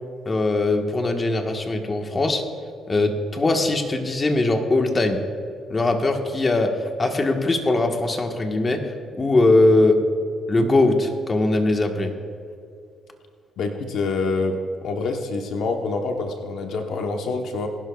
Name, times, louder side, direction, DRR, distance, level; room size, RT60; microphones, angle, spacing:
voice 1, 0.2-2.4 2.9-5.2 5.7-10.0 10.5-12.1, left 2 dB, 30° left, 4 dB, 1.4 m, -21 dB
voice 2, 13.6-14.6 14.8-17.7, left 3 dB, 75° left, 4 dB, 1.0 m, -26 dB
20.5 x 11.5 x 2.4 m, 2.5 s
cardioid pair, 90°, 0 cm